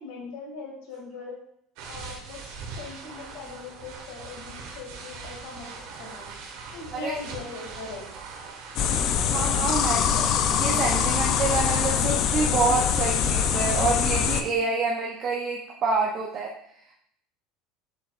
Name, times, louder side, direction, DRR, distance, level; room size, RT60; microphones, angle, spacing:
voice 1, 0.0-1.4 1.9-5.7 6.0-6.3 6.7-8.1, left 4 dB, 75° left, -2 dB, 2.2 m, -40 dB
sound 1, 1.8-9.0, right 4 dB, 65° right, 1.5 m, -41 dB
sound 2, 8.8-14.4, left 8 dB, 40° left, 0.4 m, -24 dB
voice 2, 9.3-16.5, right 4 dB, 30° right, -1 dB, 0.6 m, -27 dB
7.0 x 6.2 x 2.4 m, 0.72 s
cardioid pair, 175°, 0 cm